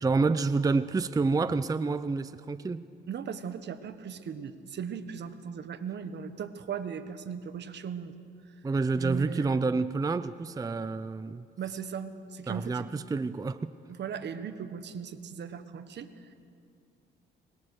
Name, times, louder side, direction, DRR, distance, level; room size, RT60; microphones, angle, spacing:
voice 1, 0.0-2.9 8.6-11.5 12.5-13.7, right 4 dB, 20° right, 14 dB, 0.5 m, -28 dB
voice 2, 3.1-8.2 8.5-8.6 8.9-9.8 11.6-12.8 13.9-16.3, right 7 dB, 60° right, 10 dB, 1.3 m, -38 dB
23.5 x 20.0 x 6.6 m, 2.4 s
cardioid pair, 90°, 20 cm